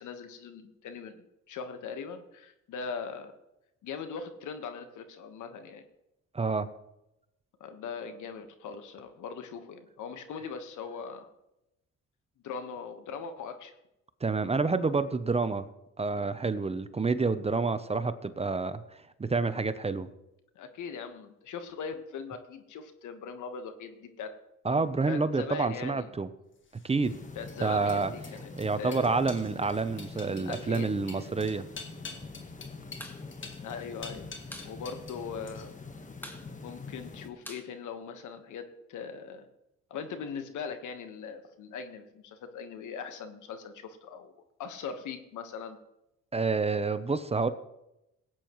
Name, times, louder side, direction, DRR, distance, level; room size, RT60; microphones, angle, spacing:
voice 1, 0.0-3.3 3.8-5.8 7.6-11.3 12.4-13.7 20.5-24.3 24.7-26.1 27.3-28.5 28.8-29.1 30.5-31.0 33.6-34.3 34.6-35.7 36.6-39.5 39.9-44.3 44.6-45.8, left 6 dB, 80° left, 8 dB, 1.4 m, -40 dB
voice 2, 6.3-6.7 14.2-15.7 16.0-18.8 19.2-20.1 24.6-26.3 26.8-27.1 27.6-28.1 28.6-31.6 46.3-47.5, right 4 dB, 20° right, 12 dB, 0.6 m, -28 dB
sound 1, 26.7-35.2 35.5-35.9, left 4 dB, 40° left, 1.8 m, -47 dB
sound 2, 27.0-37.3, left 3 dB, 25° left, 1.3 m, -45 dB
sound 3, 33.0-33.2 33.5-33.6 33.9-34.7 35.1-35.2 35.4-35.8 36.2-38.5, equal, 5° left, 1.8 m, -46 dB
18.0 x 8.9 x 3.1 m, 0.88 s
cardioid pair, 90°, 30 cm